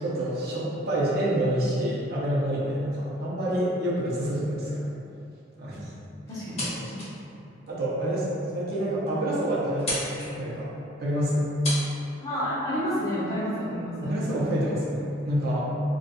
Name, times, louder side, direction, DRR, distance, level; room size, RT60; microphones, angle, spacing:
voice 1, 0.0-4.8 5.6-5.9 6.6-7.1 7.7-10.7 11.0-11.4 14.0-15.7, right 1 dB, 55° right, -7 dB, 0.7 m, -27 dB
sound 1, 6.3-7.2 7.6-7.7 8.4-8.5 8.8-8.9 9.1-9.4 9.7-10.3 11.2-11.3 11.6-11.8, left 1 dB, 35° left, 1.0 m, -32 dB
voice 2, 6.3-7.0 12.2-14.1, equal, 20° left, -10 dB, 0.8 m, -30 dB
2.4 x 2.3 x 4.0 m, 2.7 s
head